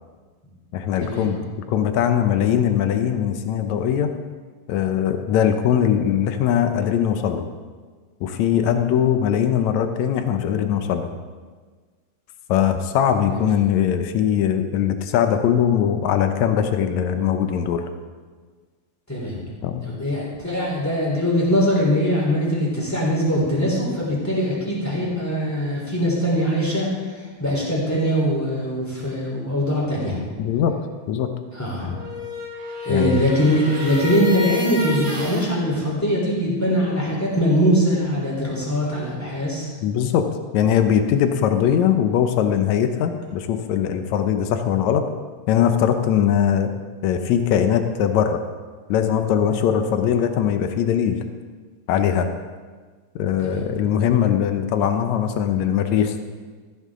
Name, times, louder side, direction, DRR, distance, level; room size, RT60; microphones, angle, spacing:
voice 1, 0.7-1.4 1.7-4.1 4.7-7.5 8.2-11.1 12.5-17.8 19.6-19.9 30.4-30.7 31.1-31.3 32.9-33.2 39.8-40.2 40.5-45.1 45.5-46.7 47.0-48.4 48.9-51.2 51.9-52.3 53.1-56.2, left 9 dB, 75° left, 8 dB, 1.7 m, -20 dB
voice 2, 19.1-19.4 19.8-26.9 27.1-30.2 31.5-31.9 32.8-39.7 53.4-53.6, equal, 5° left, -4 dB, 3.1 m, -22 dB
sound 1, 31.9-35.5, left 4 dB, 35° right, 1.9 m, -29 dB
14.5 x 11.5 x 3.7 m, 1.5 s
omnidirectional pair, 4.0 m